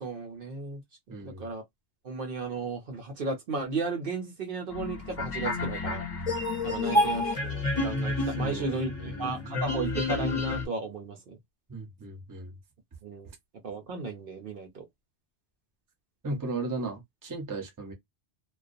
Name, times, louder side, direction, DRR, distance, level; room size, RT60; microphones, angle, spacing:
voice 1, 0.0-0.8 1.2-1.6 2.0-6.0 6.6-11.4 13.0-13.3 13.6-14.9, right 3 dB, 60° right, 0.8 m, -34 dB
voice 2, 1.1-1.5 8.4-8.7 9.0-9.5 11.7-12.5 16.2-17.9, right 3 dB, 20° right, 0.6 m, -36 dB
sound 1, 4.7-10.7, left 2 dB, 35° left, 0.8 m, -29 dB
2.3 x 2.2 x 2.5 m
omnidirectional pair, 1.1 m